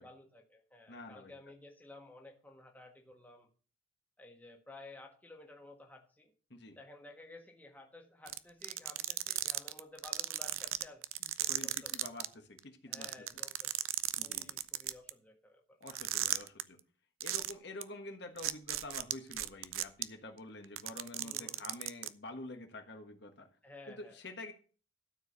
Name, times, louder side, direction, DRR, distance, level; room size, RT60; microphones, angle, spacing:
voice 1, 0.0-3.5 4.2-6.3 6.8-11.1 11.4-11.9 12.9-13.7 14.2-15.8 21.2-21.6 23.6-24.2, left 2 dB, 10° left, 2 dB, 1.4 m, -54 dB
voice 2, 0.9-1.3 6.5-6.8 11.2-13.2 14.2-14.6 15.8-16.8 17.2-23.5 23.9-24.5, left 2 dB, 55° left, 5 dB, 1.4 m, -48 dB
sound 1, 8.3-12.3 12.6-12.7 12.9-15.1 15.9-16.6 17.2-17.5 17.8-17.9 18.4-20.0 20.6-22.1, right 15 dB, 85° right, 0.6 m, -35 dB
12.5 x 4.8 x 6.8 m, 0.40 s
head